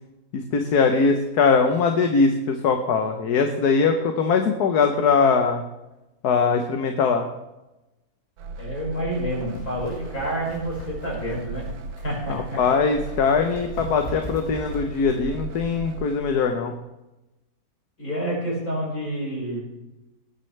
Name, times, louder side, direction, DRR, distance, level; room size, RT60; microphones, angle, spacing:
voice 1, 0.3-5.6 6.2-7.3 12.3-16.7, left 5 dB, 85° left, 5 dB, 1.5 m, -21 dB
sound 1, 8.4-16.2, right 4 dB, 75° right, 1.3 m, -37 dB
voice 2, 8.6-11.7 12.0-12.6 18.0-19.7, equal, 65° left, -4 dB, 5.9 m, -28 dB
sound 2, 9.2-15.3, left 1 dB, 45° left, 1.9 m, -39 dB
20.0 x 9.8 x 3.3 m, 0.98 s
omnidirectional pair, 1.6 m